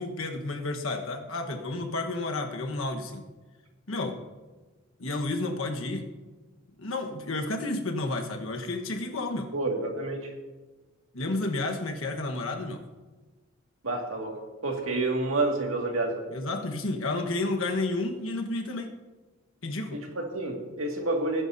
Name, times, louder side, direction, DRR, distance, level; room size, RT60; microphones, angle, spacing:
voice 1, 0.0-3.3 3.9-4.2 5.0-6.1 6.8-9.5 11.1-12.8 16.3-18.9 19.6-20.0, left 2 dB, 80° left, 3 dB, 1.3 m, -31 dB
voice 2, 9.5-10.3 13.8-16.2 19.9-21.4, right 2 dB, 85° right, 2 dB, 2.1 m, -29 dB
19.0 x 9.9 x 2.7 m, 1.3 s
head